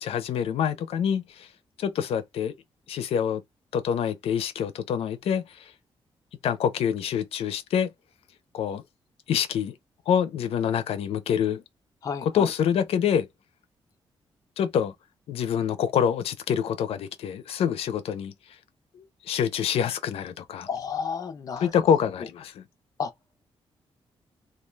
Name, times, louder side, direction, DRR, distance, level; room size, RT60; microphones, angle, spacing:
voice 1, 0.0-1.5 1.8-2.5 2.9-3.4 3.7-5.7 6.4-7.9 8.5-8.8 9.3-9.8 10.1-11.6 12.2-13.3 14.6-14.9 15.3-18.3 18.9-20.7 21.6-22.6, left 8 dB, 90° left, 0.4 m, -26 dB
voice 2, 12.0-12.5 20.7-21.8 23.0-23.1, left 6 dB, 35° left, 0.5 m, -32 dB
2.3 x 2.2 x 3.1 m
wide cardioid pair, 170°, 10 cm